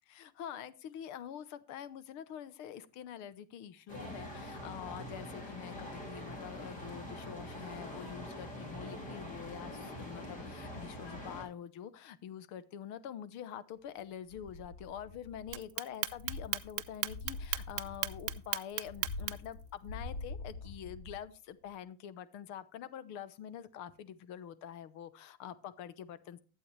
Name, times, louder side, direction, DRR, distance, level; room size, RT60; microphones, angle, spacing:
voice 1, 0.1-26.4, left 9 dB, 45° left, 15 dB, 0.9 m, -46 dB
sound 1, 3.9-11.4, left 1 dB, 20° left, 2.8 m, -44 dB
sound 2, 14.3-15.7 16.0-21.3 21.7-21.8, left 3 dB, 80° left, 6.6 m, -45 dB
Clock, 15.5-19.5, right 22 dB, 60° right, 0.7 m, -35 dB
11.5 x 8.4 x 3.2 m, 0.35 s
cardioid pair, 175°, 40 cm